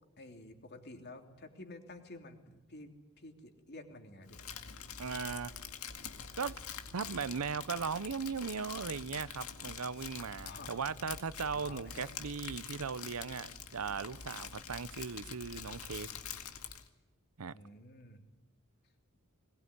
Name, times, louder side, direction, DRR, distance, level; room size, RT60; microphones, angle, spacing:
voice 1, 0.2-4.4 10.4-10.9 11.5-12.1 17.5-18.2, left 2 dB, 50° left, 3.1 m, -51 dB
Crumpling crinkling, 4.3-16.9, left 7 dB, 85° left, 2.1 m, -46 dB
voice 2, 5.0-5.5 6.4-6.6 6.9-16.1 17.4-17.5, right 5 dB, 80° right, 0.7 m, -38 dB
21.5 x 20.0 x 9.8 m
head